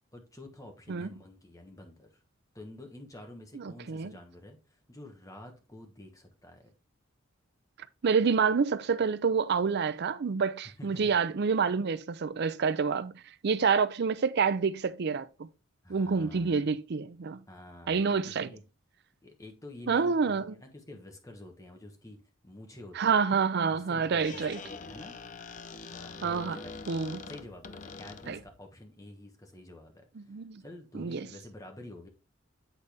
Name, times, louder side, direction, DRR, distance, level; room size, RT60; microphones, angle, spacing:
voice 1, 0.1-2.2 2.5-6.6 10.6-11.0 15.8-16.5 17.5-18.6 19.2-23.2 23.6-25.2 25.9-26.9 27.3-30.3 30.6-32.1, left 1 dB, 15° left, 1.2 m, -49 dB
voice 2, 3.5-4.1 8.0-13.1 13.4-15.5 15.9-17.4 17.9-18.5 19.9-20.5 23.0-24.6 26.2-26.6 26.9-27.2 28.3-28.4 30.2-30.6 30.9-31.3, right 5 dB, 55° right, 0.5 m, -28 dB
Squeak, 24.0-28.6, left 4 dB, 40° left, 0.5 m, -44 dB
8.3 x 4.1 x 3.4 m
head